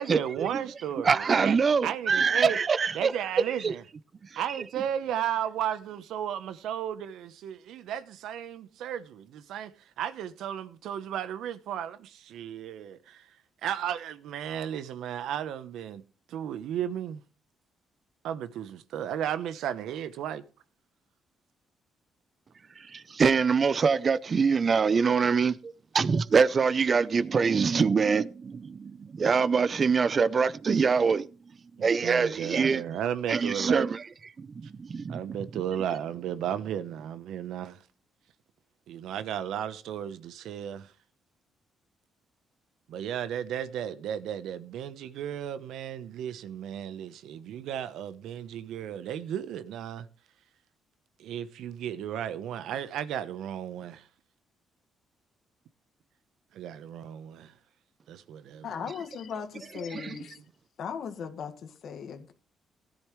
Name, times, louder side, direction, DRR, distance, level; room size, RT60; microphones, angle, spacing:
voice 1, 0.0-1.6 1.8-2.6 2.9-3.8 4.4-13.3 13.6-16.0 16.3-17.2 18.2-20.4 31.8-33.8 35.1-37.8 38.9-40.9 42.9-50.1 51.2-54.1 56.5-57.5 58.1-58.9 60.2-60.4, right 10 dB, 80° right, 0.9 m, -34 dB
voice 2, 1.0-3.1 3.6-3.7 22.9-31.3 31.8-32.8 33.3-34.0 34.4-35.2 59.9-60.2, right 5 dB, 40° right, 0.6 m, -24 dB
voice 3, 58.6-60.4 60.8-62.3, left 7 dB, 65° left, 1.8 m, -38 dB
16.5 x 10.5 x 3.2 m
cardioid pair, 90°, 0 cm